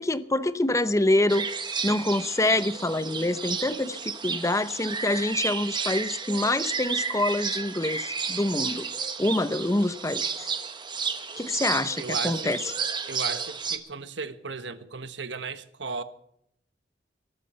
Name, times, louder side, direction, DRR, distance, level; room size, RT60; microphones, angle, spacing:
voice 1, 0.0-1.5 1.8-8.8 9.2-10.5 11.4-12.7, left 2 dB, 15° left, 0.7 m, -26 dB
sound 1, 1.3-13.8, right 5 dB, 25° right, 1.3 m, -32 dB
voice 2, 12.0-12.5 13.1-16.0, right 4 dB, 80° right, 1.2 m, -35 dB
22.0 x 12.5 x 4.4 m
head